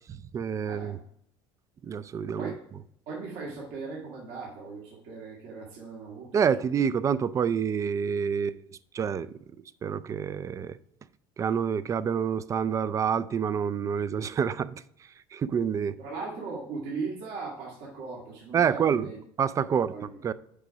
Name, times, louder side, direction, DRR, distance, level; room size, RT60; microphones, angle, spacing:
voice 1, 0.1-1.0 1.8-2.5 6.3-8.6 8.9-9.3 9.8-10.8 11.4-14.7 15.3-16.0 18.5-19.1 19.4-19.9 20.2-20.3, right 7 dB, 25° right, 0.4 m, -27 dB
voice 2, 0.6-0.9 2.4-2.6 3.1-6.3 15.5-15.6 16.0-19.2 19.7-20.2, right 4 dB, 70° right, 2.0 m, -38 dB
6.7 x 5.2 x 4.8 m
supercardioid pair, 115°, 12 cm